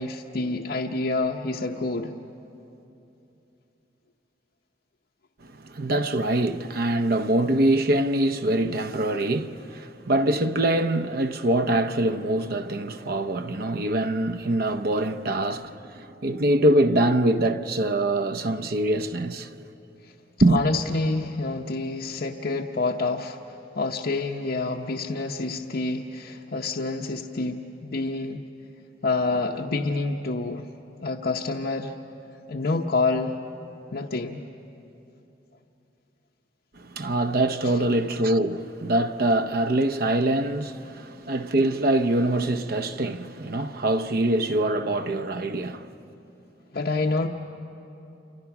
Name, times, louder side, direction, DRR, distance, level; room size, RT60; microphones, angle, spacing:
voice 1, 0.0-2.1 20.5-28.4 29.0-30.7 31.0-31.9 32.5-33.4 33.9-34.4 46.7-47.3, left 3 dB, 60° left, 0.9 m, -27 dB
voice 2, 5.4-19.6 20.4-20.6 36.8-45.9, right 1 dB, 60° right, 0.7 m, -24 dB
29.0 x 27.0 x 6.0 m
head